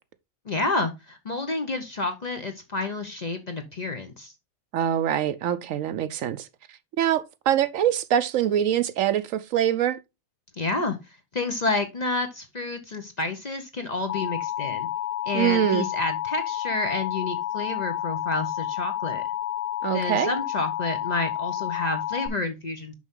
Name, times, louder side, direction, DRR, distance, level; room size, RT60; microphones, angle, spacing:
voice 1, 0.5-4.3 10.6-11.0 11.3-14.9 15.3-19.2 19.9-22.9, left 3 dB, 35° left, 0.8 m, -29 dB
voice 2, 4.7-6.5 7.0-10.0 15.3-15.9 19.8-20.3, right 10 dB, 70° right, 1.0 m, -24 dB
Alarm, 14.1-22.3, left 12 dB, 55° left, 0.4 m, -30 dB
6.3 x 5.4 x 3.6 m
omnidirectional pair, 1.5 m